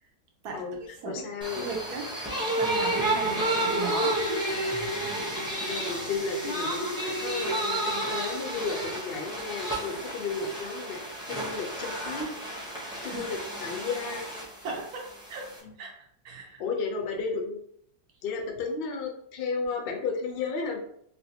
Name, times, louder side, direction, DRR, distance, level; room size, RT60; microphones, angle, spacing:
voice 1, 0.4-1.3 1.6-2.1 2.5-4.2 13.0-13.2 14.6-15.5 15.8-16.6, right 4 dB, 65° right, 1 dB, 1.2 m, -36 dB
voice 2, 1.1-1.7 3.3-3.4 5.7-11.0 11.3-12.3 13.0-14.3 15.6-15.7 16.6-17.6 18.2-20.8, left 4 dB, 75° left, 3 dB, 0.5 m, -33 dB
sound 1, 1.4-15.6, right 1 dB, 5° right, 0.4 m, -31 dB
3.3 x 2.6 x 2.8 m, 0.68 s
omnidirectional pair, 1.8 m